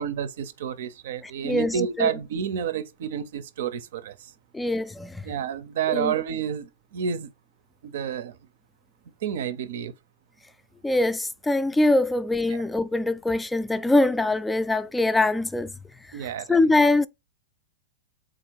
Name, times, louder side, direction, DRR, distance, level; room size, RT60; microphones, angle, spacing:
voice 1, 0.0-4.3 5.2-7.3 7.8-8.4 9.2-9.9 12.5-12.6 16.1-16.6, right 8 dB, 70° right, 0.6 m, -30 dB
voice 2, 1.4-2.1 4.5-5.2 5.9-6.1 10.8-15.7 16.5-17.1, left 2 dB, 5° left, 0.3 m, -23 dB
3.9 x 2.5 x 4.6 m
hypercardioid pair, 130°, 0 cm